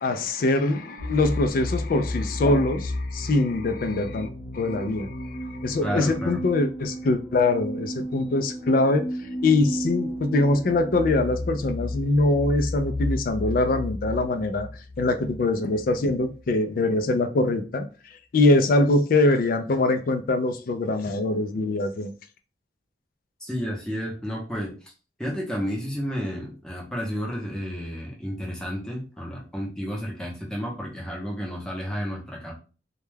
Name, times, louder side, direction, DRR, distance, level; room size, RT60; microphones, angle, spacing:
voice 1, 0.0-4.3 4.5-9.1 9.4-14.7 15.0-17.9 18.3-22.1, left 2 dB, 50° left, 0.3 m, -23 dB
sound 1, 1.0-16.5, left 1 dB, 30° left, 0.8 m, -33 dB
voice 2, 5.8-6.4 23.4-24.7 25.2-32.5, equal, 5° left, 0.7 m, -31 dB
2.2 x 2.1 x 3.2 m
head